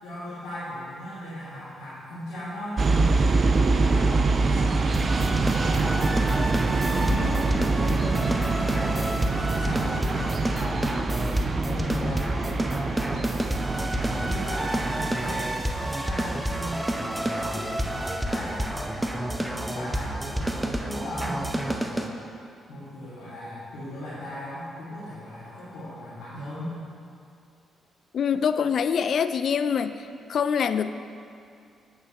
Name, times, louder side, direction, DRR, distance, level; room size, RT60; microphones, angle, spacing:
voice 1, 0.0-6.5 6.8-9.1 9.5-11.3 11.7-13.3 14.1-15.4 15.8-22.2 22.7-26.7, left 1 dB, 75° left, -11 dB, 1.7 m, -37 dB
sound 1, 2.8-15.6, right 3 dB, 45° right, 0.4 m, -25 dB
sound 2, 4.9-22.1, right 1 dB, 15° right, 0.7 m, -29 dB
voice 2, 28.1-30.0 30.3-30.9, left 7 dB, 60° left, 12 dB, 0.3 m, -24 dB
8.2 x 8.0 x 2.9 m, 2.4 s
hypercardioid pair, 45°, 0 cm